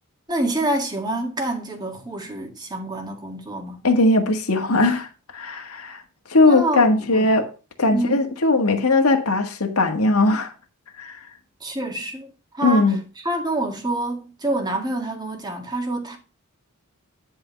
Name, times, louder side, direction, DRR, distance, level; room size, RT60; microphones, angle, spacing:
voice 1, 0.3-3.8 6.4-7.3 7.9-8.2 11.6-12.3 12.6-16.2, right 1 dB, 20° right, 2.0 m, -27 dB
voice 2, 3.8-5.1 5.3-6.0 6.3-7.5 7.8-10.5 11.0-11.2 12.6-13.0, left 2 dB, 90° left, 1.6 m, -19 dB
10.5 x 4.7 x 5.7 m
head